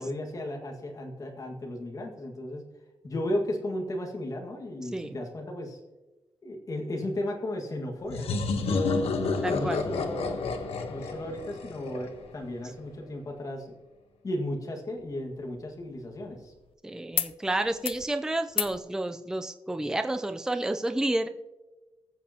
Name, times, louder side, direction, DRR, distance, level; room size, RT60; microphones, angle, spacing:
voice 1, 0.0-2.7 3.0-5.8 6.4-9.2 9.5-10.4 10.9-13.7 14.2-16.5, left 1 dB, 35° left, 1 dB, 1.8 m, -34 dB
sound 1, 8.1-12.7, left 4 dB, 85° left, 1.1 m, -30 dB
voice 2, 9.4-9.8 16.8-21.3, right 1 dB, 5° right, 7 dB, 0.5 m, -30 dB
sound 2, 15.0-16.7 17.1-17.3 17.6-18.1 18.5-18.8 20.1-20.2, left 9 dB, 65° left, 0.5 m, -35 dB
20.0 x 7.5 x 2.9 m, 1.1 s
wide cardioid pair, 170°, 10 cm